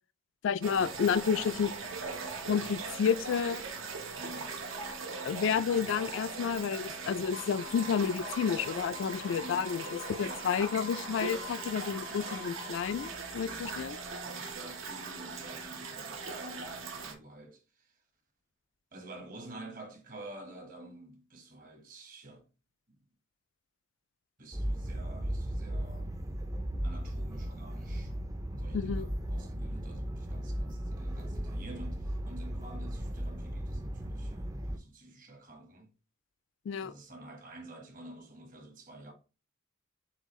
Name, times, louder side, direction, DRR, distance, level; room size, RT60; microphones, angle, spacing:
voice 1, 0.4-1.7 2.5-3.6 5.2-14.0 28.7-29.1 36.7-36.9, left 7 dB, 60° left, 0.3 m, -30 dB
sound 1, 0.6-17.1, right 4 dB, 70° right, 0.9 m, -40 dB
voice 2, 4.2-4.5 9.3-9.7 10.2-10.5 13.4-13.9 14.2-18.0 18.9-22.5 22.9-23.0 24.4-26.1 26.8-28.1 28.5-35.9 36.8-39.1, right 1 dB, 40° right, 1.2 m, -49 dB
sound 2, 7.3-13.1, left 10 dB, 90° left, 0.7 m, -47 dB
sound 3, 24.5-34.8, equal, 15° right, 0.4 m, -36 dB
7.0 x 2.4 x 3.1 m
head